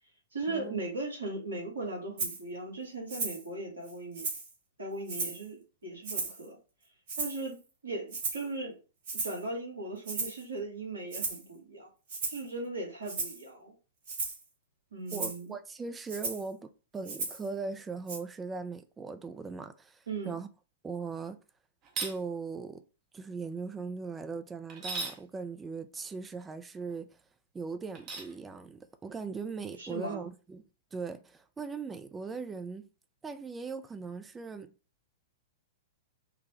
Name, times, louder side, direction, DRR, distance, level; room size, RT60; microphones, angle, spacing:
voice 1, 0.3-4.3 4.8-6.6 7.2-7.6 7.8-8.8 9.2-11.9 12.3-13.7 14.9-15.5 20.1-20.4 29.8-30.3, right 2 dB, 75° right, 1.5 m, -38 dB
Rattle (instrument), 2.2-2.4 3.1-3.4 3.9-4.5 5.1-5.5 6.0-6.5 7.1-7.5 8.1-8.5 9.1-9.4 10.1-10.4 11.1-11.4 12.1-12.5 13.1-13.4 14.1-14.4 15.1-15.4 16.1-16.5 17.1-17.5 18.1-18.2, right 3 dB, 60° right, 1.4 m, -35 dB
voice 2, 15.1-20.5 20.8-21.4 22.0-22.8 23.1-27.2 27.5-30.6 30.9-32.9 33.2-34.7, right 4 dB, 15° right, 0.4 m, -39 dB
sound 1, 21.8-22.2 24.7-25.2 27.9-28.3, right 4 dB, 35° right, 0.7 m, -36 dB
3.9 x 2.1 x 2.9 m
figure-of-eight pair, 105°, 0 cm